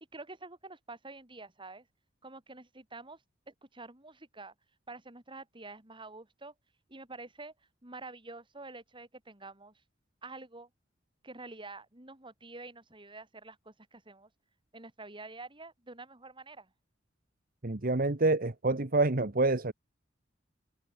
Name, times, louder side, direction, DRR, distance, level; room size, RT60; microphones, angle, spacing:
voice 1, 0.0-1.9 2.2-3.2 3.5-4.5 4.9-6.5 6.9-7.5 7.8-9.8 10.2-10.7 11.2-14.3 14.7-16.7, right 3 dB, 25° right, 5.0 m, -48 dB
voice 2, 17.6-19.7, right 2 dB, 50° right, 1.3 m, -27 dB
head